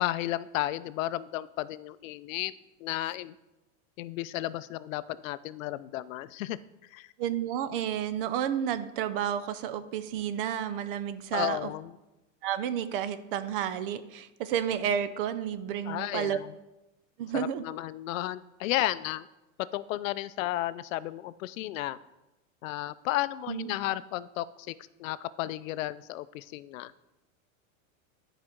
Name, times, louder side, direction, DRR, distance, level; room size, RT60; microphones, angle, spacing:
voice 1, 0.0-2.5 2.8-3.3 4.0-7.1 11.3-11.9 15.9-16.5 17.3-19.3 19.6-22.0 22.6-24.7 25.0-26.9, left 15 dB, 75° left, 16 dB, 0.5 m, -33 dB
voice 2, 7.2-11.7 12.4-16.4 17.2-17.6 23.5-23.7, right 9 dB, 45° right, 13 dB, 0.5 m, -31 dB
11.0 x 5.0 x 4.4 m, 0.99 s
supercardioid pair, 170°, 40 cm